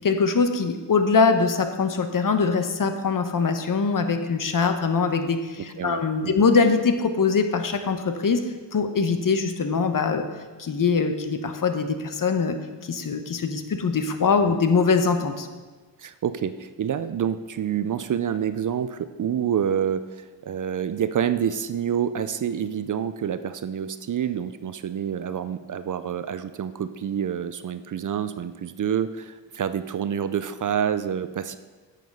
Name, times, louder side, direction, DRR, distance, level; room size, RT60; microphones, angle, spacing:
voice 1, 0.0-10.3 10.6-15.5, left 5 dB, 45° left, 7 dB, 1.0 m, -23 dB
voice 2, 5.8-6.4 14.5-14.6 16.0-31.6, right 8 dB, 45° right, 12 dB, 0.5 m, -28 dB
9.3 x 6.9 x 5.3 m, 1.3 s
cardioid pair, 75°, 44 cm